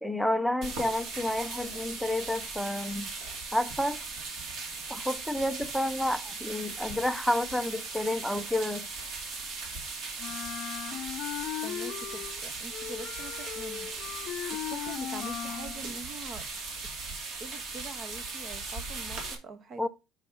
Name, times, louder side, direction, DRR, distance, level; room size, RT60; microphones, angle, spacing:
voice 1, 0.0-3.1 3.5-4.0 4.9-8.9 19.8-19.9, left 1 dB, ahead, 0.7 m, -30 dB
sound 1, 0.6-19.4, right 3 dB, 50° right, 2.4 m, -38 dB
Wind instrument woodwind instrument, 10.2-12.4 12.7-15.8, left 12 dB, 50° left, 0.6 m, -38 dB
voice 2, 11.6-13.9 14.5-16.4 17.4-19.9, right 3 dB, 35° right, 1.0 m, -44 dB
5.7 x 5.2 x 6.1 m
cardioid pair, 150°, 0 cm